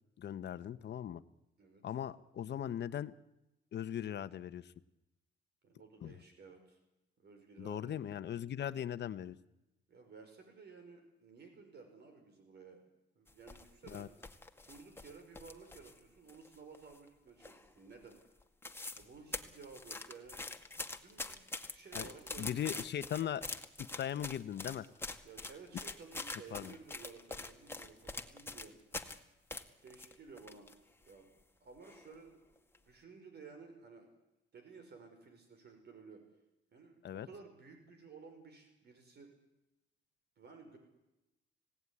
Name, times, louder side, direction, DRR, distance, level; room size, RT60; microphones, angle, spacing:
voice 1, 0.2-1.2 1.8-3.1 3.7-4.7 6.0-6.2 7.6-9.4 13.9-14.1 21.9-22.1 22.4-23.4 23.8-24.9 26.5-26.7 37.0-37.3, left 10 dB, 60° left, 13 dB, 1.1 m, -39 dB
voice 2, 5.6-6.8 7.2-8.0 9.9-12.8 13.2-14.1 14.7-18.2 19.0-20.4 21.0-21.5 21.7-22.8 25.2-28.7 29.8-30.7 31.0-31.3 31.6-32.4 32.8-34.1 34.5-36.2 36.7-39.3 40.4-40.8, right 4 dB, 55° right, 6 dB, 5.5 m, -55 dB
sound 1, 13.3-16.0 16.3-17.1 17.4-17.8 18.1-18.2 18.4-19.1 19.3-29.2 29.5-30.7 31.1-31.2 31.8-32.2 32.6-32.8, left 2 dB, 10° left, 2.1 m, -44 dB
25.5 x 18.0 x 9.9 m, 0.98 s
cardioid pair, 90°, 20 cm